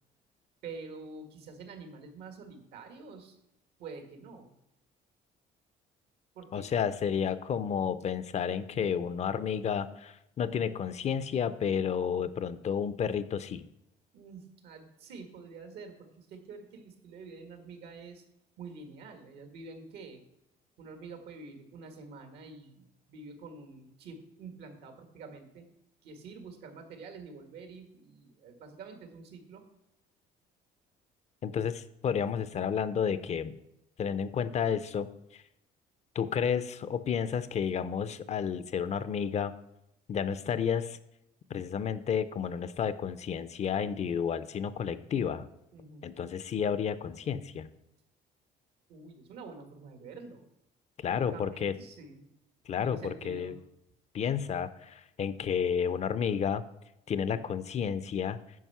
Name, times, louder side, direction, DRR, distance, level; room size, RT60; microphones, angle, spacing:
voice 1, 0.6-3.4 3.8-4.5 6.3-6.7 14.1-18.2 18.6-20.2 20.8-25.7 26.0-29.6 45.7-46.3 48.9-50.5 51.1-52.3 52.8-53.6, right 4 dB, 80° right, 6 dB, 1.7 m, -47 dB
voice 2, 6.5-13.6 31.4-33.5 34.0-35.4 36.1-39.5 40.1-41.0 41.5-45.5 46.0-47.7 51.0-51.7 52.7-53.6 54.1-56.6 57.1-58.4, left 7 dB, 40° left, 14 dB, 0.5 m, -31 dB
9.4 x 5.4 x 5.6 m, 0.83 s
cardioid pair, 110°, 17 cm